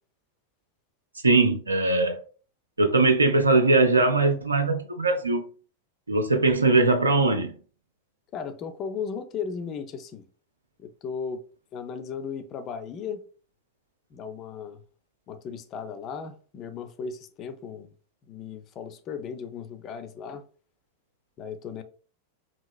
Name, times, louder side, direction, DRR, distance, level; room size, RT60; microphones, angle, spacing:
voice 1, 1.2-2.2 2.8-5.5 6.1-7.6, right 3 dB, 80° right, 0.4 m, -21 dB
voice 2, 8.3-10.2 10.8-11.4 11.7-13.2 14.1-14.8 15.3-17.9 18.3-20.4 21.4-21.8, left 6 dB, 35° left, 0.3 m, -36 dB
2.8 x 2.8 x 2.3 m
figure-of-eight pair, 90°, 0 cm